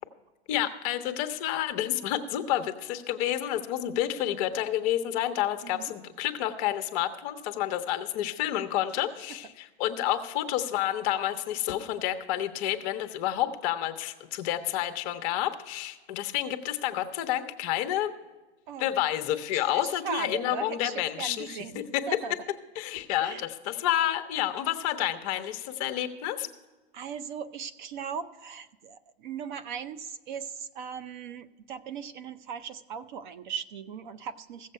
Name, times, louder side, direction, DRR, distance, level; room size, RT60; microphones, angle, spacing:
voice 1, 0.5-18.1 18.8-21.5 21.7-22.0 22.8-26.5, left 12 dB, 35° left, 8 dB, 0.8 m, -29 dB
voice 2, 19.5-22.3 23.2-23.4 26.9-34.7, right 7 dB, 45° right, 13 dB, 0.6 m, -38 dB
15.5 x 7.4 x 5.4 m, 1.2 s
hypercardioid pair, 150°, 32 cm